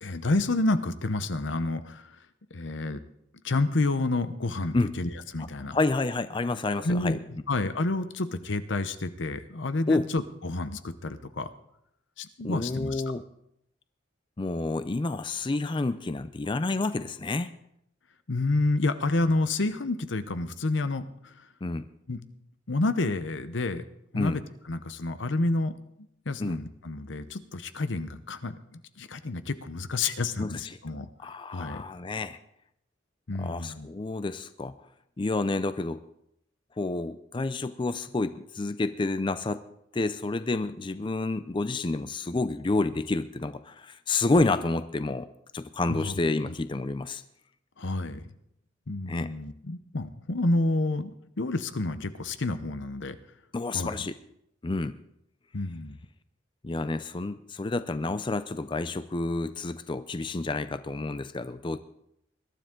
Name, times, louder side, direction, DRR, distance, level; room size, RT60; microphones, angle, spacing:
voice 1, 0.0-2.2 2.5-3.0 3.4-5.8 6.8-7.2 7.5-11.5 12.2-13.0 18.3-21.5 22.1-22.2 22.7-23.8 24.1-24.4 24.7-31.1 31.5-31.8 33.3-33.9 45.9-46.2 46.4-46.5 47.8-48.3 48.9-53.2 53.7-54.1 55.5-56.0, left 2 dB, 75° left, 11 dB, 0.9 m, -29 dB
voice 2, 5.7-7.2 9.9-10.1 12.4-13.2 14.4-17.5 21.6-21.9 24.2-24.4 26.4-26.6 30.4-30.8 31.2-32.4 33.4-34.7 35.2-36.0 36.8-39.6 39.9-45.3 45.5-47.2 49.1-49.3 53.5-54.1 54.6-55.0 56.6-61.8, left 2 dB, 25° left, 12 dB, 0.4 m, -29 dB
21.5 x 12.0 x 3.8 m, 0.77 s
head